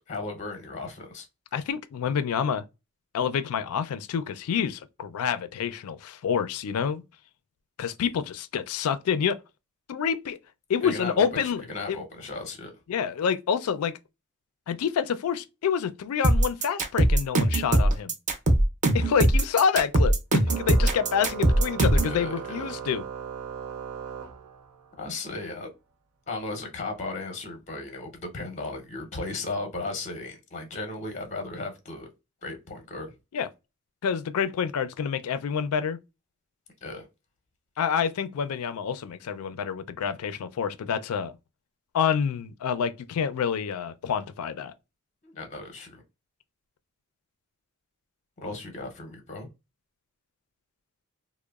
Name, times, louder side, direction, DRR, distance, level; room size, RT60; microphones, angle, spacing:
voice 1, 0.1-1.3 10.8-12.7 22.0-22.8 25.0-25.7 26.3-32.1 32.4-33.1 36.8-37.1 45.2-46.0 48.4-49.5, left 3 dB, 30° left, 0.6 m, -36 dB
voice 2, 1.5-2.6 3.1-7.0 7.8-9.4 9.9-10.4 10.7-11.6 11.9-12.0 12.9-13.9 14.7-18.1 18.9-23.0 33.3-33.5 34.0-36.0 37.8-41.3 41.9-44.7, left 7 dB, 80° left, 0.4 m, -27 dB
sound 1, 16.2-22.2, right 1 dB, 35° right, 0.5 m, -21 dB
Organ, 20.5-25.0, right 7 dB, 85° right, 0.5 m, -38 dB
2.9 x 2.0 x 2.2 m
head